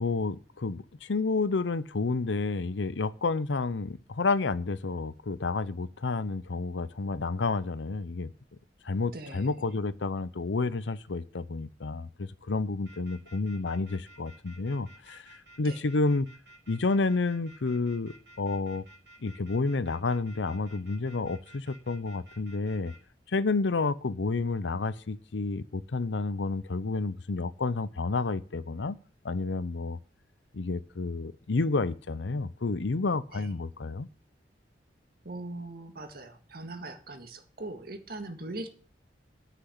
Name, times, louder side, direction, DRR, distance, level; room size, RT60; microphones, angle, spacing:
voice 1, 0.0-8.3 8.8-15.3 15.6-16.3 16.7-18.9 19.2-22.9 23.3-29.0 29.2-30.0 30.5-34.1, left 3 dB, 80° left, 0.7 m, -30 dB
voice 2, 9.1-9.8 15.6-15.8 33.3-33.6 35.2-38.7, right 2 dB, 55° right, 1.7 m, -41 dB
sound 1, 12.8-23.0, right 1 dB, 75° right, 3.4 m, -54 dB
10.0 x 6.0 x 8.0 m
head